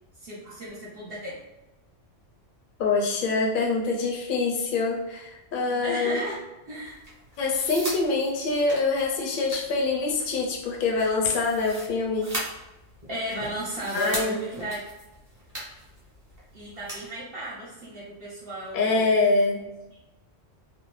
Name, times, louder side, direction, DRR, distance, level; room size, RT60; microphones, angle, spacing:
voice 1, 0.2-1.4 5.8-6.4 6.6-7.0 13.1-14.8 16.5-19.1, right 1 dB, 55° right, -7 dB, 0.9 m, -34 dB
voice 2, 2.8-6.2 7.4-12.3 13.9-14.4 18.7-19.6, left 3 dB, 55° left, -1 dB, 0.6 m, -25 dB
sound 1, 6.8-17.1, right 1 dB, 25° right, 0.4 m, -40 dB
2.5 x 2.0 x 3.1 m, 0.97 s
omnidirectional pair, 1.3 m